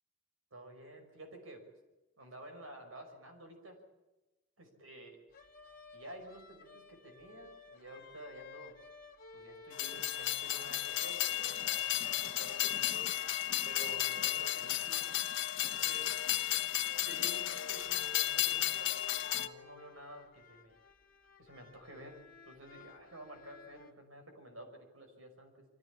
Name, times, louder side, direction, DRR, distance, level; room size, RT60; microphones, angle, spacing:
voice 1, 0.5-1.6 2.2-3.8 4.6-5.2 5.9-8.7 9.3-13.2 13.6-15.0 15.6-16.1 17.0-18.9 19.2-20.8 21.4-22.2 22.5-25.7, right 1 dB, 90° right, 4 dB, 5.7 m, -51 dB
sound 1, 5.3-23.9, left 4 dB, 45° left, 2.1 m, -56 dB
Train, 9.7-19.5, left 13 dB, 65° left, 1.1 m, -34 dB
24.5 x 16.0 x 8.6 m, 1.1 s
head